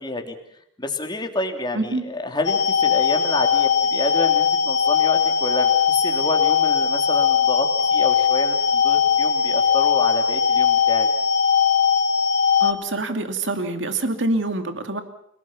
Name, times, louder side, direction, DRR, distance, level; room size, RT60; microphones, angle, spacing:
voice 1, 0.0-0.3 0.8-11.1, left 2 dB, 25° left, 4 dB, 3.0 m, -29 dB
sound 1, 2.4-12.7, left 7 dB, 70° left, 2.8 m, -19 dB
voice 2, 12.6-15.0, right 2 dB, 70° right, 7 dB, 2.6 m, -25 dB
30.0 x 19.0 x 5.8 m, 0.75 s
head